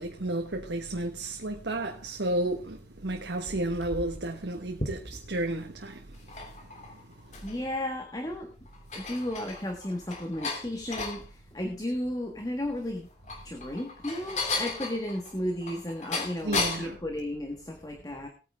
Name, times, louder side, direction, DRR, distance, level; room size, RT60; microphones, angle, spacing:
voice 1, 0.0-6.0 16.4-17.0, right 1 dB, 85° right, 1.3 m, -32 dB
sound 1, 3.2-5.4 6.1-7.7 8.2-8.3 8.7-11.2 13.0-17.0, left 3 dB, 40° left, 2.8 m, -35 dB
voice 2, 7.4-8.5 8.9-13.1 13.4-18.3, left 1 dB, 20° left, 1.5 m, -34 dB
18.5 x 9.3 x 3.6 m
head